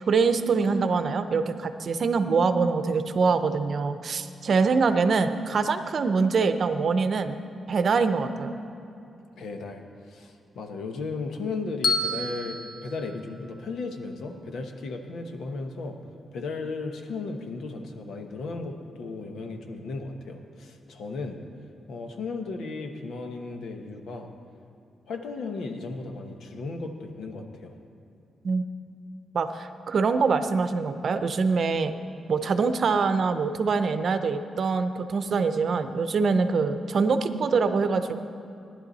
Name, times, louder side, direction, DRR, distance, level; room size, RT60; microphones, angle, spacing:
voice 1, 0.1-7.4 7.7-8.6 28.4-28.6 29.3-31.9 32.3-38.2, right 4 dB, 55° right, 9 dB, 0.7 m, -24 dB
voice 2, 9.4-16.0 16.3-21.4 21.9-24.3 25.1-27.7, left 3 dB, 85° left, 5 dB, 1.1 m, -35 dB
Bell, 11.8-14.0, left 2 dB, 50° left, 1.2 m, -31 dB
18.5 x 11.0 x 4.1 m, 2.7 s
cardioid pair, 115°, 0 cm